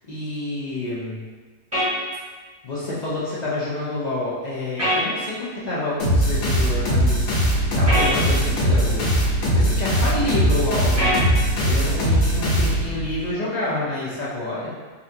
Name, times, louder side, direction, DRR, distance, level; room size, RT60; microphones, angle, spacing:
voice 1, 0.1-1.2 2.6-7.3 7.8-9.1 9.5-11.1 11.6-14.7, left 2 dB, 45° left, -8 dB, 0.5 m, -28 dB
sound 1, 1.7-1.9 4.8-5.0 7.9-8.1 11.0-11.2, equal, 15° right, 0.9 m, -21 dB
sound 2, 6.0-13.2, equal, 80° left, 1.2 m, -20 dB
4.0 x 2.5 x 2.7 m, 1.4 s
omnidirectional pair, 1.4 m